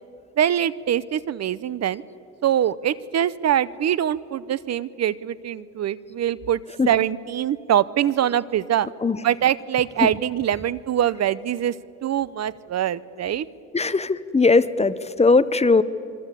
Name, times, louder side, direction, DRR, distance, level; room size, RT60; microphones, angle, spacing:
voice 1, 0.4-2.0 2.4-6.6 6.9-8.9 9.2-11.7 12.0-13.5, right 10 dB, 60° right, 18 dB, 0.8 m, -23 dB
voice 2, 13.7-15.8, left 3 dB, 20° left, 14 dB, 1.0 m, -19 dB
27.0 x 23.5 x 8.4 m, 2.5 s
cardioid pair, 90°, 30 cm